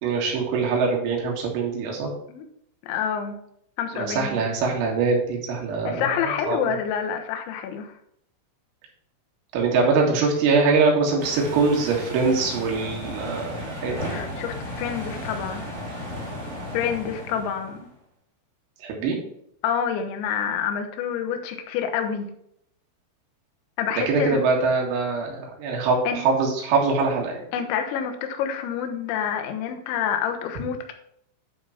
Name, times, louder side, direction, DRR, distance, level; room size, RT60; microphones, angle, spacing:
voice 1, 0.0-2.1 3.9-6.6 9.5-14.1 18.8-19.2 24.1-27.4, right 4 dB, 85° right, -1 dB, 4.6 m, -23 dB
voice 2, 2.8-3.4 3.8-4.4 5.8-7.9 14.0-15.7 16.7-17.8 19.6-22.3 23.8-24.4 26.0-26.2 27.5-30.9, left 8 dB, 75° left, 6 dB, 3.0 m, -28 dB
sound 1, 11.2-17.9, left 1 dB, 35° right, 1.0 m, -35 dB
10.5 x 3.8 x 5.8 m, 0.72 s
omnidirectional pair, 5.9 m